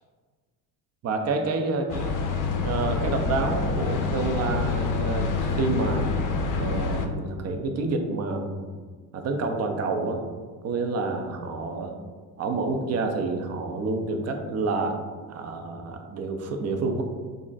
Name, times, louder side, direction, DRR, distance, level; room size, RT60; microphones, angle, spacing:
voice 1, 1.0-2.1 2.6-6.1 6.5-8.7 9.1-10.2 10.6-12.0 12.4-15.0 15.3-17.0, right 3 dB, 35° right, 5 dB, 0.5 m, -28 dB
sound 1, 1.9-7.1, left 4 dB, 45° left, 0.5 m, -27 dB
2.4 x 2.1 x 3.9 m, 1.5 s
supercardioid pair, 70°, 45 cm